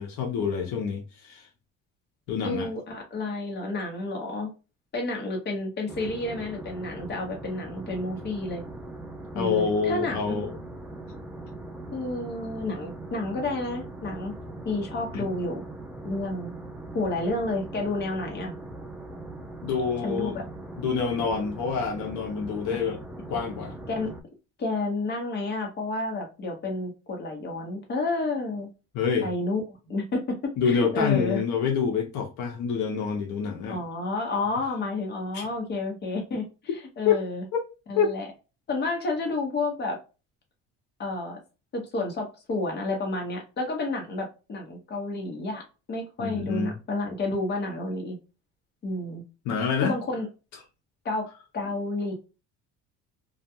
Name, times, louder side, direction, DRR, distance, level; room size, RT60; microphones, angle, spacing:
voice 1, 0.0-1.5 2.3-2.7 9.3-10.6 15.1-15.3 19.6-20.4 20.8-23.0 23.3-23.7 28.9-29.3 30.6-33.8 35.3-35.5 37.0-37.1 38.0-38.1 46.2-46.8 49.5-49.9, left 6 dB, 70° left, 0.7 m, -27 dB
voice 2, 2.4-4.5 4.9-8.6 9.3-10.4 11.9-14.3 14.6-15.6 16.0-16.5 16.9-18.5 20.0-20.4 22.8-22.9 23.9-24.1 24.6-28.7 29.2-30.4 30.6-31.4 33.7-36.5 37.0-37.4 37.9-38.3 38.7-40.0 41.0-41.4 41.7-45.6 45.9-48.2 48.8-49.2 49.8-50.3 51.0-51.3 51.5-52.1, left 2 dB, 35° left, 1.0 m, -30 dB
sound 1, 5.9-24.2, right 2 dB, 5° right, 0.3 m, -40 dB
2.4 x 2.2 x 2.7 m
cardioid pair, 115°, 30 cm